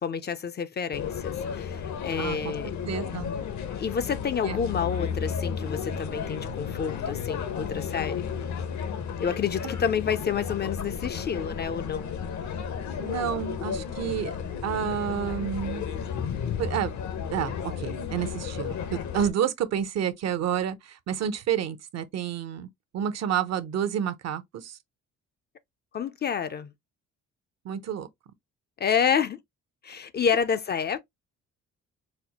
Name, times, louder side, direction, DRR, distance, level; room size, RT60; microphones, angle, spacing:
voice 1, 0.0-2.7 3.8-8.3 9.2-12.1 25.9-26.7 28.8-29.4 29.8-31.0, left 7 dB, 35° left, 0.4 m, -29 dB
sound 1, 0.9-19.3, left 7 dB, 65° left, 0.8 m, -33 dB
voice 2, 2.2-2.5 2.8-3.3 4.4-4.6 13.0-14.3 14.6-15.8 16.6-16.9 17.3-22.7 22.9-24.8 27.6-28.1, right 9 dB, 60° right, 0.6 m, -29 dB
4.2 x 2.0 x 2.8 m
cardioid pair, 90°, 30 cm